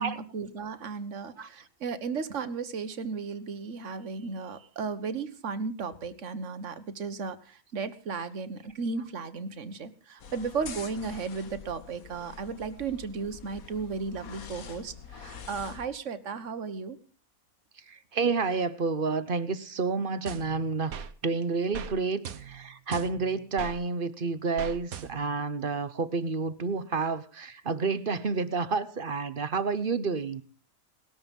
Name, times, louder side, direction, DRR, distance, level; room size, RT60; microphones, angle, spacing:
voice 1, 0.0-17.0, right 5 dB, 55° right, 1.7 m, -35 dB
sound 1, 10.2-15.9, left 6 dB, 75° left, 1.8 m, -45 dB
voice 2, 17.9-20.9 21.2-30.4, right 4 dB, 40° right, 1.1 m, -30 dB
sound 2, 20.3-21.1 21.7-21.9 22.2-23.8 24.6-25.4, right 7 dB, 75° right, 1.4 m, -40 dB
19.5 x 13.5 x 5.4 m
omnidirectional pair, 1.5 m